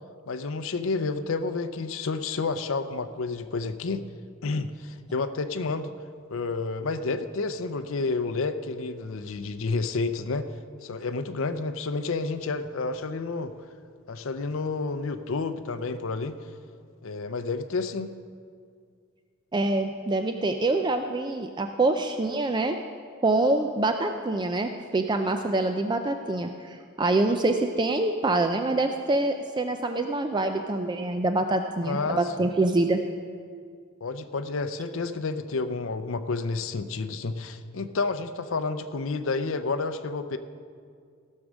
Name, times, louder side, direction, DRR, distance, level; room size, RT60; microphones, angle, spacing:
voice 1, 0.3-4.0 4.4-5.9 6.3-10.5 10.8-13.5 14.1-16.3 17.0-18.1 31.8-32.2 34.0-40.4, left 3 dB, 65° left, 9 dB, 0.6 m, -30 dB
voice 2, 19.5-22.8 23.2-33.0, right 2 dB, 20° right, 6 dB, 0.4 m, -25 dB
15.5 x 6.5 x 6.1 m, 2.2 s
head